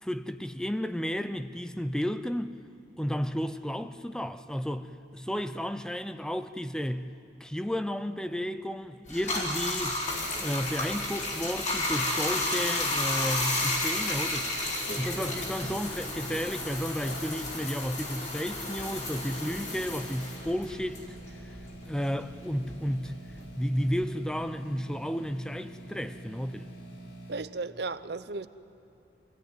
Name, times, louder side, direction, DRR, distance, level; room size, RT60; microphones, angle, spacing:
voice 1, 0.0-2.6 3.0-7.1 7.4-10.0 10.3-14.5 15.0-21.0 21.4-21.5 21.8-23.1 23.6-26.7, equal, 5° left, 0.5 m, -32 dB
Bathtub (filling or washing), 9.1-21.9 22.2-24.0, left 2 dB, 40° left, 3.9 m, -32 dB
sound 1, 14.6-27.4, right 1 dB, 65° left, 2.8 m, -46 dB
voice 2, 27.3-28.5, right 3 dB, 60° right, 0.7 m, -35 dB
25.5 x 16.5 x 9.3 m
head